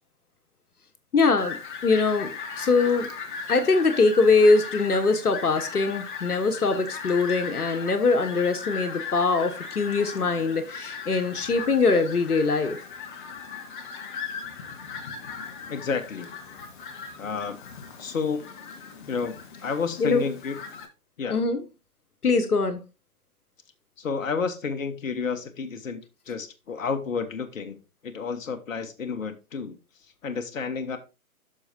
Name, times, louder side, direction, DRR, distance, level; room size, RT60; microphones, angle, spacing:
voice 1, 1.1-2.3 2.6-3.1 3.5-12.8 20.0-20.2 21.3-21.6 22.2-22.8, left 3 dB, 85° left, 1.4 m, -22 dB
Fowl, 1.4-20.9, left 5 dB, 35° left, 1.3 m, -38 dB
voice 2, 15.7-16.3 17.2-17.6 18.0-18.5 19.1-20.6 21.2-21.4 24.0-31.0, left 5 dB, 60° left, 1.4 m, -31 dB
13.0 x 4.6 x 2.8 m
figure-of-eight pair, 140°, 45 cm